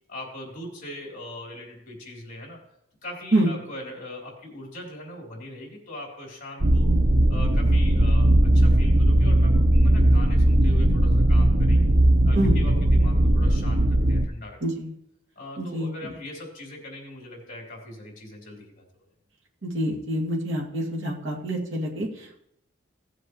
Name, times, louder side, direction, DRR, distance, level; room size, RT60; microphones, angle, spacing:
voice 1, 0.1-2.6 3.0-6.9 7.3-11.8 12.2-14.6 15.4-18.8, left 1 dB, 40° left, -1 dB, 3.7 m, -40 dB
sound 1, 6.6-14.2, right 1 dB, 40° right, 0.7 m, -18 dB
voice 2, 14.6-14.9 15.6-16.1 19.6-22.4, right 1 dB, 60° right, -2 dB, 2.3 m, -26 dB
17.0 x 7.8 x 3.2 m, 0.78 s
head